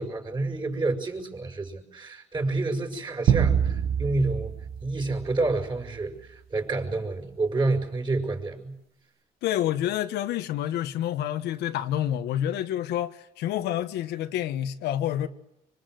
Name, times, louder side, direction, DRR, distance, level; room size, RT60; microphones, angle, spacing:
voice 1, 0.0-4.5 4.8-8.8, right 2 dB, 25° right, 6.3 m, -29 dB
sound 1, 3.3-5.9, right 8 dB, 65° right, 1.6 m, -26 dB
voice 2, 9.4-15.3, left 11 dB, 80° left, 1.5 m, -28 dB
26.0 x 25.0 x 8.0 m
cardioid pair, 110°, 17 cm